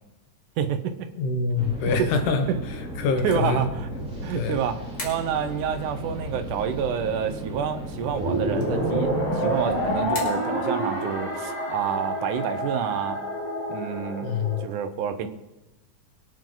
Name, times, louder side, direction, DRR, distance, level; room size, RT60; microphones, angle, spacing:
sound 1, 0.6-14.7, left 1 dB, 30° left, 3.7 m, -48 dB
voice 1, 0.6-1.1 2.0-2.6 3.2-3.9 4.2-13.2 13.7-14.3 14.6-15.3, right 8 dB, 85° right, 9 dB, 2.5 m, -28 dB
voice 2, 1.2-2.5 3.0-3.7 4.3-4.6 14.2-14.7, left 4 dB, 80° left, 6 dB, 2.7 m, -25 dB
sound 2, 1.5-10.0, equal, ahead, 3.7 m, -35 dB
sound 3, 8.1-14.6, equal, 50° left, 4.3 m, -28 dB
23.5 x 9.2 x 3.9 m, 0.99 s
omnidirectional pair, 3.5 m